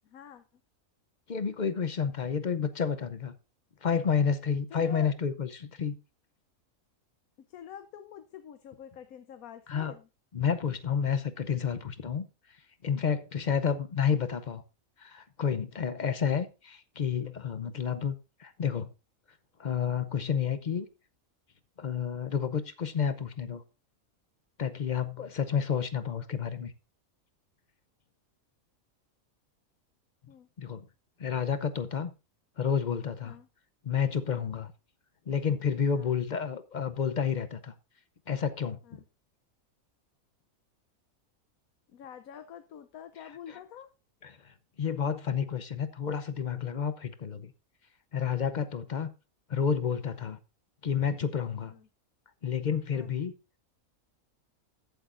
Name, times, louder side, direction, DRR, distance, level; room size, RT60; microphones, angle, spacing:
voice 1, 0.0-0.4 4.7-5.1 7.5-10.1 30.3-30.5 33.2-33.5 34.3-34.5 35.9-36.2 38.8-39.0 41.9-43.9 51.7-51.9 52.9-53.1, left 9 dB, 80° left, 1.2 m, -47 dB
voice 2, 1.3-3.3 3.8-5.9 9.7-9.9 10.3-12.2 12.8-14.6 15.0-18.1 18.4-18.9 19.6-20.9 21.8-23.6 24.6-26.7 30.6-30.8 31.2-32.1 32.6-33.4 33.8-34.7 35.3-37.7 38.3-38.8 43.5-43.6 44.2-47.5 48.1-49.1 49.5-50.4 50.8-51.7 52.4-53.3, left 7 dB, 45° left, 0.6 m, -30 dB
14.5 x 8.2 x 2.5 m
omnidirectional pair, 1.5 m